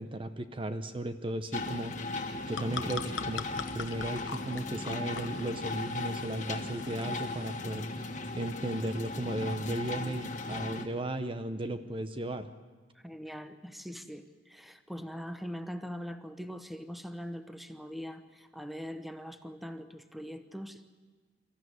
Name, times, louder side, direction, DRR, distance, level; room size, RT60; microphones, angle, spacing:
voice 1, 0.0-2.0 2.5-3.5 3.7-8.1 8.4-12.5, right 1 dB, 30° right, 9 dB, 0.8 m, -35 dB
sound 1, 1.5-10.9, left 2 dB, 40° left, 1.7 m, -37 dB
sound 2, 2.3-7.7, left 5 dB, 85° left, 1.0 m, -43 dB
voice 2, 12.9-20.9, equal, ahead, 9 dB, 0.9 m, -42 dB
25.0 x 14.0 x 9.5 m, 1.4 s
head